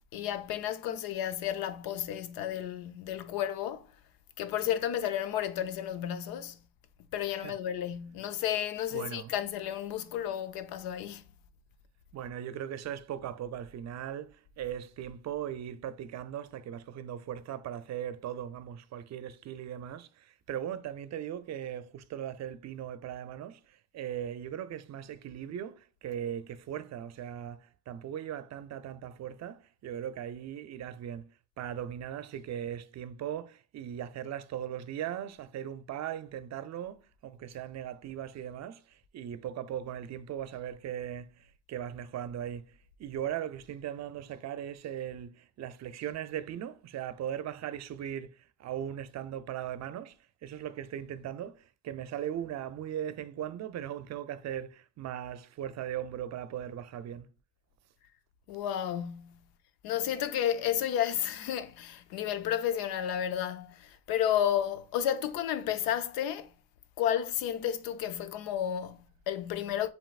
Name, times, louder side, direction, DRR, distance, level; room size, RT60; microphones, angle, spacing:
voice 1, 0.1-3.9 4.4-6.6 7.1-11.2 58.5-59.4 59.8-66.5 67.0-69.9, left 10 dB, 75° left, 0.6 m, -32 dB
voice 2, 8.9-9.3 12.1-50.2 50.4-57.3, right 10 dB, 50° right, 0.6 m, -39 dB
7.4 x 3.0 x 2.4 m
supercardioid pair, 85°, 36 cm